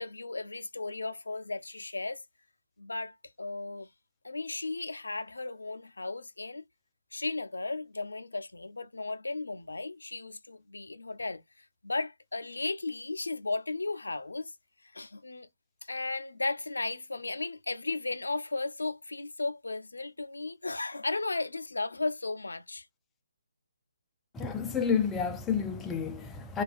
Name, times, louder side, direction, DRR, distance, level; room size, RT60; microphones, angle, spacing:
voice 1, 0.0-2.2 2.8-3.9 4.2-6.6 7.1-14.5 14.8-15.5 15.8-22.9, left 3 dB, 90° left, 0.4 m, -35 dB
voice 2, 24.3-26.6, left 6 dB, 10° left, 0.4 m, -30 dB
2.4 x 2.2 x 2.4 m
figure-of-eight pair, 150°, 0 cm